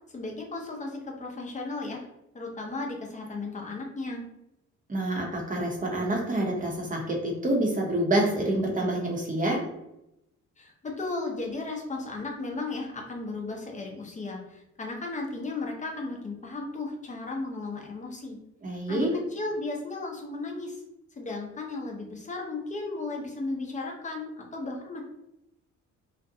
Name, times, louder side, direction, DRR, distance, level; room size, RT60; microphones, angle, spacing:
voice 1, 0.1-2.1 2.3-4.2 10.6-18.4 18.9-20.8 21.2-25.0, left 3 dB, 25° left, 0 dB, 0.6 m, -35 dB
voice 2, 4.9-9.6 18.6-19.1, right 1 dB, 25° right, 0 dB, 0.8 m, -27 dB
2.5 x 2.1 x 2.7 m, 0.87 s
cardioid pair, 90°, 30 cm